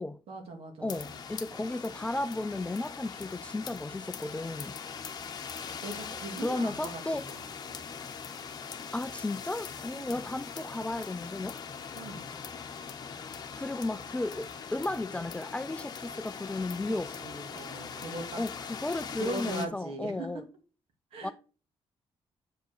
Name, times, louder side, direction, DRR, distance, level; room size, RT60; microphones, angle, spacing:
voice 1, 0.3-1.0 5.8-7.9 9.9-10.2 11.9-12.3 17.2-18.4 19.2-20.3 21.1-21.3, right 3 dB, 75° right, 2.7 m, -40 dB
voice 2, 0.8-4.8 6.4-7.3 8.9-11.6 13.6-17.1 18.4-20.4 21.2-21.3, left 2 dB, 10° left, 0.3 m, -34 dB
sound 1, 0.9-19.7, left 6 dB, 45° left, 1.0 m, -41 dB
7.9 x 5.2 x 4.7 m
cardioid pair, 145°, 10 cm